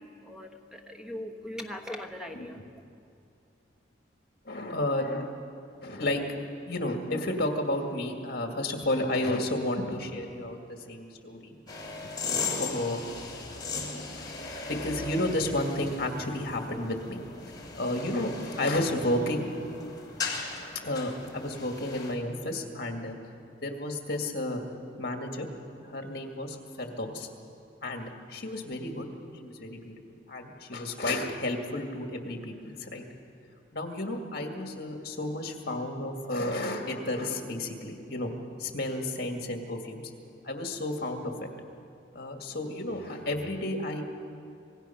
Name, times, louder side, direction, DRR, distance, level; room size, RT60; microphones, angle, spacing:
voice 1, 0.0-2.6, left 1 dB, 5° right, 3 dB, 1.2 m, -40 dB
voice 2, 2.3-2.6 4.5-5.3 5.8-11.6 12.0-12.1 12.6-13.0 13.9-14.2 14.7-17.2 17.8-18.3 18.6-19.5 20.8-23.2 23.6-24.6 25.0-25.5 25.8-27.3 27.8-29.1 29.4-33.1 33.7-38.3 38.6-40.0 40.4-41.5 42.1-44.0, left 1 dB, 55° left, 3 dB, 2.1 m, -32 dB
sound 1, 11.7-22.1, left 4 dB, 20° left, 2.9 m, -37 dB
26.0 x 18.5 x 5.8 m, 2.6 s
head